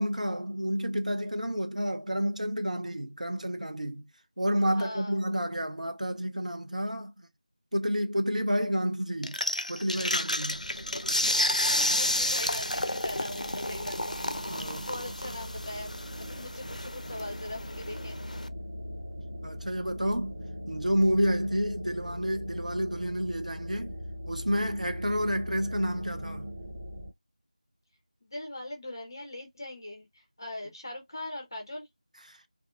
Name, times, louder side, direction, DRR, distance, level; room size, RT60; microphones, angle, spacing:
voice 1, 0.0-4.1 4.4-7.3 7.7-9.4 9.7-10.6 11.2-11.4 14.5-14.9 19.4-20.4 20.7-24.0 24.3-26.5 32.3-32.4, equal, 75° right, 0.7 m, -30 dB
voice 2, 4.7-5.2 10.5-10.6 11.6-14.1 14.8-15.9 16.2-18.2 25.0-25.2 28.2-31.9, left 1 dB, 35° left, 0.7 m, -41 dB
sound 1, 9.2-18.5, left 1 dB, 80° left, 0.4 m, -31 dB
sound 2, 10.5-27.1, equal, 15° right, 0.6 m, -41 dB
2.6 x 2.3 x 2.3 m
figure-of-eight pair, 170°, 4 cm